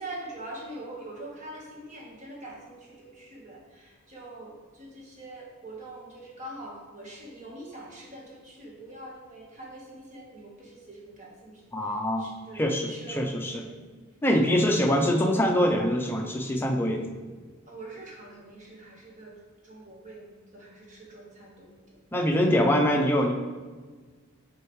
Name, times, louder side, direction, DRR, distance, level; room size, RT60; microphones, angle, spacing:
voice 1, 0.0-13.8 17.7-19.3 19.6-22.0, right 2 dB, 35° right, -3 dB, 1.3 m, -44 dB
voice 2, 11.7-12.3 12.5-13.6 14.2-17.1 22.1-23.3, equal, 10° left, 1 dB, 0.5 m, -24 dB
6.6 x 4.7 x 3.1 m, 1.4 s
head